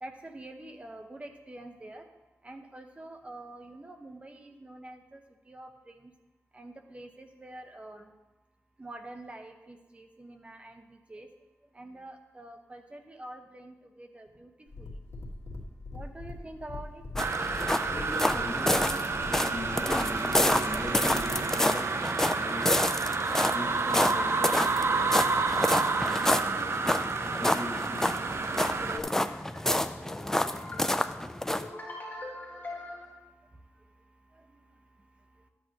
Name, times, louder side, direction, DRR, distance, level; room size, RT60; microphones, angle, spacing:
voice 1, 0.0-2.0 2.4-5.2 5.5-6.1 6.5-8.1 8.8-10.8 11.1-11.3 11.7-14.5 14.8-14.9 15.9-17.0, right 1 dB, 25° right, 5 dB, 0.8 m, -46 dB
sound 1, 14.7-21.4, left 2 dB, 80° left, 1.5 m, -42 dB
sound 2, 17.1-31.7, left 1 dB, 10° left, 0.4 m, -29 dB
sound 3, 17.2-29.0, right 4 dB, 55° right, 0.5 m, -30 dB
voice 2, 17.9-19.0 19.4-21.9 22.3-22.8 23.2-25.3 26.0-27.0 27.3-33.1, left 2 dB, 35° left, -5 dB, 1.8 m, -41 dB
12.0 x 8.0 x 2.9 m, 1.1 s
wide cardioid pair, 115°, 5 cm